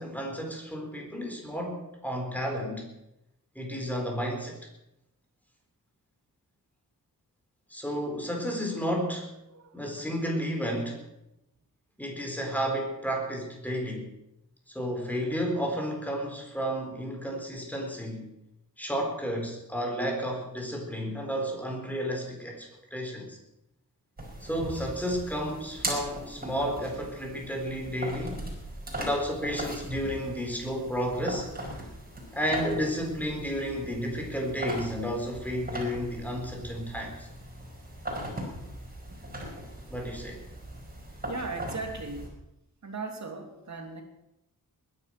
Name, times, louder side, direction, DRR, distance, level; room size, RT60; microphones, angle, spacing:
voice 1, 0.0-2.9 3.6-4.6 7.7-9.3 9.7-11.0 12.0-14.1 14.7-18.3 18.8-23.4 24.4-28.4 29.0-31.5 32.3-37.3 39.9-40.4, equal, 5° left, 1 dB, 4.0 m, -32 dB
voice 2, 9.4-10.0 41.3-42.4 42.8-44.0, right 3 dB, 50° right, 3 dB, 2.9 m, -38 dB
sound 1, 24.2-42.3, right 1 dB, 25° right, 5.0 m, -39 dB
20.5 x 10.5 x 6.0 m, 0.87 s
wide cardioid pair, 130°, 34 cm